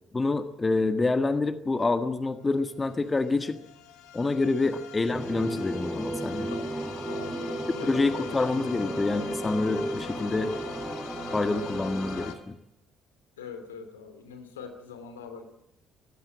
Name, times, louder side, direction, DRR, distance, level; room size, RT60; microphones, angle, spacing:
voice 1, 0.1-3.6 4.1-6.5 7.9-10.5 11.3-12.5, left 3 dB, 25° left, 8 dB, 1.6 m, -27 dB
sound 1, 2.1-2.2 2.4-12.3, left 9 dB, 65° left, 2.0 m, -43 dB
sound 2, 5.1-12.3, right 1 dB, 10° right, 4.9 m, -34 dB
voice 2, 7.0-8.8 10.0-10.2 13.4-15.4, left 5 dB, 80° left, 7 dB, 2.7 m, -43 dB
22.0 x 15.5 x 8.6 m, 0.86 s
figure-of-eight pair, 50°, 0 cm